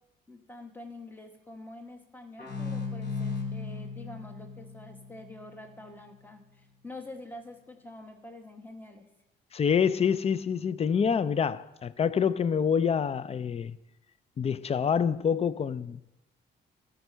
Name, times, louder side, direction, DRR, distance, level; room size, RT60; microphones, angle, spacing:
voice 1, 0.3-9.0, left 2 dB, 10° left, 1.3 m, -46 dB
sound 1, 2.4-5.8, left 4 dB, 60° left, 3.9 m, -36 dB
voice 2, 9.5-13.8 14.4-16.0, left 7 dB, 30° left, 0.4 m, -26 dB
13.5 x 5.2 x 5.6 m
cardioid pair, 90°, 20 cm